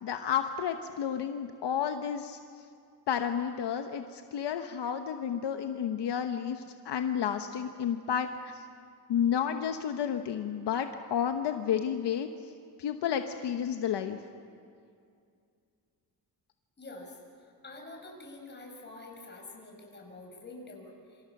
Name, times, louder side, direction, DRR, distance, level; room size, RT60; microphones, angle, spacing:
voice 1, 0.0-2.4 3.1-8.6 9.1-12.3 12.8-14.2, left 8 dB, 75° left, 6 dB, 1.1 m, -31 dB
voice 2, 16.8-17.2 17.6-21.2, left 2 dB, 25° left, 1 dB, 5.5 m, -47 dB
27.0 x 26.0 x 6.0 m, 2.3 s
wide cardioid pair, 150°, 42 cm